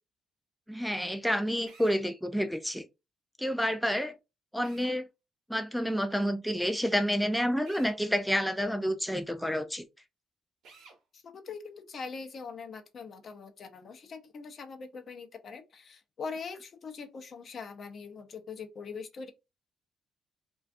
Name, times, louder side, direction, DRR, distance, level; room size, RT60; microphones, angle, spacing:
voice 1, 0.7-2.9 3.4-4.1 4.5-5.1 5.5-9.8, equal, ahead, 0.3 m, -29 dB
Drill, 1.7-2.0 4.6-5.0 7.6-8.0 10.6-11.0, right 4 dB, 70° right, 0.7 m, -53 dB
voice 2, 11.1-19.3, left 5 dB, 55° left, 0.5 m, -42 dB
2.3 x 2.3 x 2.5 m
cardioid pair, 90°, 0 cm